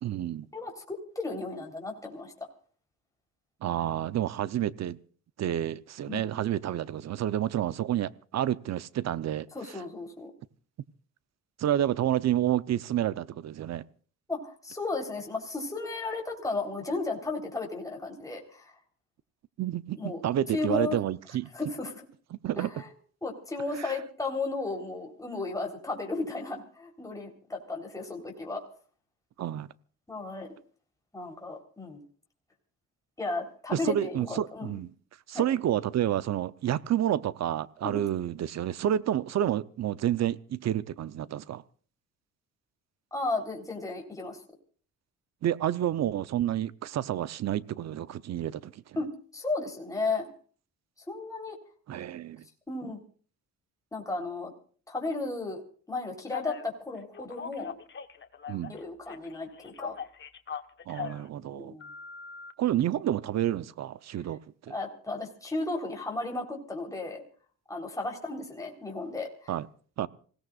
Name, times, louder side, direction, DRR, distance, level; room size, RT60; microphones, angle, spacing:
voice 1, 0.0-0.5 3.6-5.0 5.4-9.5 11.6-13.8 19.6-21.5 22.4-22.7 29.4-29.7 33.7-34.9 35.3-41.6 45.4-48.8 51.9-52.4 58.5-58.7 60.9-61.8 62.6-64.8 69.5-69.7 70.0-70.1, right 11 dB, 60° right, 0.8 m, -29 dB
voice 2, 0.5-2.3 6.1-6.3 9.5-10.3 14.3-18.7 19.9-20.2 20.5-21.0 21.5-22.0 22.6-22.9 23.2-28.6 30.1-30.5 31.1-32.0 33.2-34.8 35.3-35.4 37.8-38.0 43.1-44.4 49.0-50.3 51.1-51.6 52.7-53.0 53.9-54.5 54.9-55.6 55.9-57.7 58.8-60.0 61.5-61.9 64.7-67.2 67.7-69.5, left 3 dB, 10° left, 3.9 m, -34 dB
Telephone, 56.3-56.6 57.1-58.8 59.1-61.2 61.8-62.5, left 7 dB, 40° left, 1.3 m, -40 dB
27.0 x 17.5 x 2.5 m
cardioid pair, 90°, 30 cm